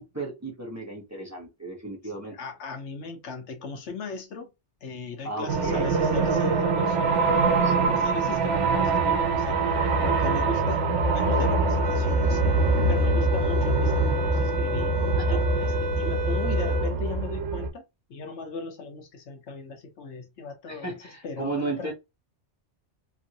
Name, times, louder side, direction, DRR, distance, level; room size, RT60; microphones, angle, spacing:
voice 1, 0.0-2.3 5.2-5.9 7.6-8.0 15.1-15.8 20.7-21.9, right 2 dB, 15° right, 0.8 m, -35 dB
voice 2, 2.2-4.5 4.8-7.0 7.9-12.4 12.9-15.0 15.6-17.8 18.1-20.9 21.2-21.9, left 4 dB, 75° left, 1.1 m, -37 dB
sound 1, 5.5-17.7, right 3 dB, 80° right, 1.0 m, -24 dB
sound 2, 11.8-17.0, left 1 dB, 55° right, 0.4 m, -32 dB
3.1 x 2.6 x 2.7 m
omnidirectional pair, 1.2 m